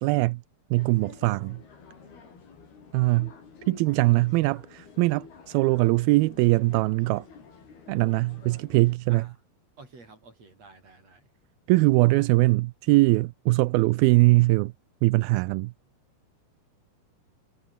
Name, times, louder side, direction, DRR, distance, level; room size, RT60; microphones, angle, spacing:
voice 1, 0.0-0.4 0.7-1.6 2.9-3.3 3.7-7.3 7.9-9.3 11.7-14.7 15.0-15.7, right 21 dB, 85° right, 2.4 m, -22 dB
sound 1, 0.8-8.9, left 5 dB, 90° left, 7.5 m, -49 dB
voice 2, 9.8-11.2, right 3 dB, 40° right, 8.5 m, -50 dB
omnidirectional pair, 4.4 m